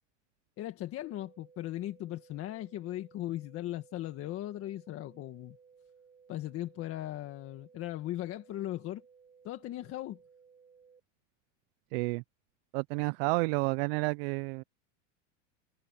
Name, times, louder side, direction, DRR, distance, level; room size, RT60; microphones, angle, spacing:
voice 1, 0.6-5.6 6.3-9.0 9.4-10.2, left 14 dB, 35° left, 1.8 m, -38 dB
sound 1, 1.0-11.0, right 6 dB, 20° right, 8.0 m, -60 dB
voice 2, 11.9-12.2 12.7-14.6, right 29 dB, 50° right, 0.5 m, -30 dB
supercardioid pair, 145°, 38 cm